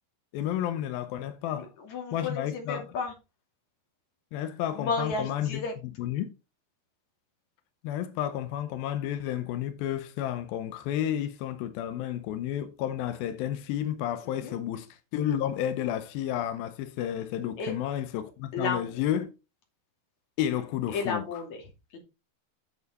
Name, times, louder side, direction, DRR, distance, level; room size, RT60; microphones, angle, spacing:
voice 1, 0.3-1.7 2.1-2.9 4.3-5.6 6.0-6.3 7.8-19.3 20.4-21.4, left 11 dB, 85° left, 2.1 m, -31 dB
voice 2, 1.5-3.1 4.7-5.7 14.2-14.6 17.6-17.7 18.5-19.0 20.9-22.0, left 4 dB, 45° left, 3.5 m, -33 dB
9.0 x 6.9 x 4.0 m
omnidirectional pair, 5.2 m